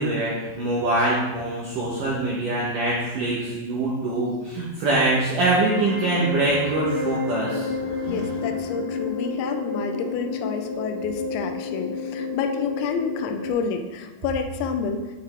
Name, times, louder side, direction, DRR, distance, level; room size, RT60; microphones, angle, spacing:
voice 1, 0.0-8.4, right 2 dB, 80° right, -5 dB, 1.9 m, -24 dB
sound 1, 5.5-13.5, left 4 dB, 40° left, 1.8 m, -30 dB
voice 2, 8.0-15.0, left 5 dB, 90° left, 4 dB, 2.2 m, -29 dB
8.2 x 5.0 x 3.4 m, 1.2 s
omnidirectional pair, 5.1 m